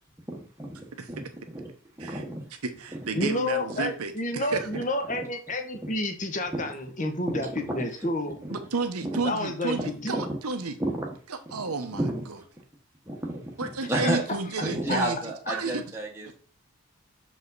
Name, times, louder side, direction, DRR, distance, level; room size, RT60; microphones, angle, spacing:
voice 1, 0.3-1.7 2.0-2.5 2.9-3.3 4.7-4.8 5.1-5.2 6.5-6.7 7.3-7.9 8.4-8.5 9.0-9.2 9.7-10.4 10.8-11.1 11.5-11.6 12.0-12.2 13.1-14.2 14.6-16.3, right 1 dB, 10° right, -2 dB, 1.0 m, -32 dB
voice 2, 2.6-4.7 8.5-10.8 11.5-12.0 12.3-12.4 13.6-15.2 15.5-15.8, right 4 dB, 85° right, 7 dB, 1.0 m, -31 dB
voice 3, 3.2-8.4 9.2-10.2 14.0-14.1 14.9-15.0, left 1 dB, 35° left, 6 dB, 1.0 m, -30 dB
6.6 x 4.9 x 4.0 m, 0.42 s
head